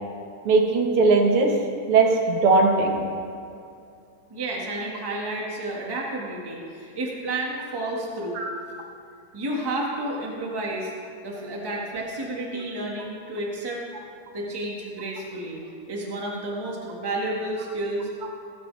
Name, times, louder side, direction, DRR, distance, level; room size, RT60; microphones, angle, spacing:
voice 1, 0.5-1.5 1.9-3.0 8.4-8.5, right 3 dB, 50° right, 1 dB, 2.0 m, -19 dB
voice 2, 4.3-8.4 9.3-10.9 11.2-13.8 14.3-15.6 15.9-18.1, right 1 dB, 10° right, -2 dB, 1.0 m, -31 dB
18.5 x 13.0 x 3.4 m, 2.5 s
omnidirectional pair, 3.7 m